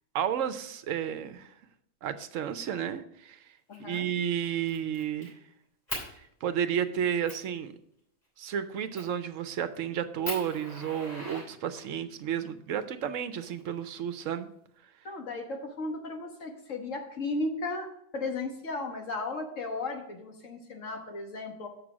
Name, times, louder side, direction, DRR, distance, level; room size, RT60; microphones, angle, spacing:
voice 1, 0.1-1.5 2.0-3.4 3.8-5.3 6.2-7.7 8.4-14.5, right 9 dB, 70° right, 11 dB, 0.9 m, -32 dB
voice 2, 3.7-4.1 15.0-17.9 18.1-21.7, left 2 dB, 60° left, 3 dB, 1.6 m, -35 dB
Fire, 3.7-4.0 4.4-5.3 5.9-6.1 6.7-6.8 7.3-7.5 8.9-9.2 9.7-9.8 10.2-12.0 13.1-14.0, equal, 30° left, 3.5 m, -40 dB
6.8 x 6.1 x 6.0 m, 0.74 s
omnidirectional pair, 1.5 m